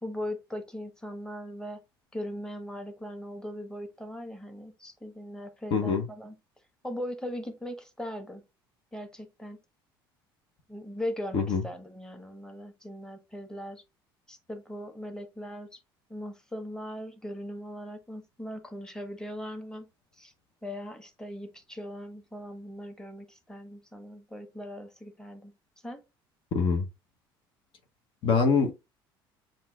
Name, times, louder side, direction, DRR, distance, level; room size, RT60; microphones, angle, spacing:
voice 1, 0.0-1.8 2.1-6.3 6.8-8.4 8.9-9.6 10.7-13.8 14.3-15.8 16.1-19.9 20.2-20.3 20.6-25.5 25.8-26.0, equal, 5° left, 1.2 m, -39 dB
voice 2, 5.7-6.0 11.3-11.6 26.5-26.8 28.2-28.8, left 5 dB, 50° left, 0.8 m, -24 dB
7.2 x 2.6 x 2.3 m
hypercardioid pair, 65°, 12 cm